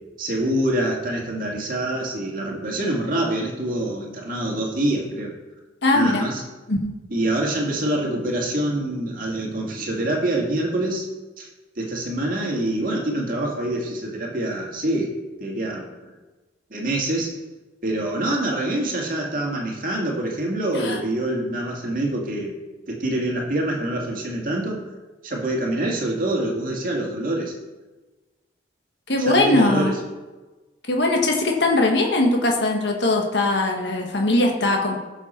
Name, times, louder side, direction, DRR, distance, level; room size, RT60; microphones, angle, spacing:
voice 1, 0.2-5.3 5.9-6.4 7.1-11.1 11.4-11.5 11.8-15.1 15.4-16.1 16.7-17.4 17.8-22.6 22.9-24.8 25.2-27.5 29.2-30.0, right 1 dB, 50° right, -1 dB, 2.1 m, -25 dB
voice 2, 5.8-6.2 6.7-6.9 20.7-21.0 29.1-29.9 30.9-35.0, left 2 dB, 75° left, 1 dB, 1.6 m, -20 dB
16.0 x 6.7 x 4.4 m, 1.2 s
head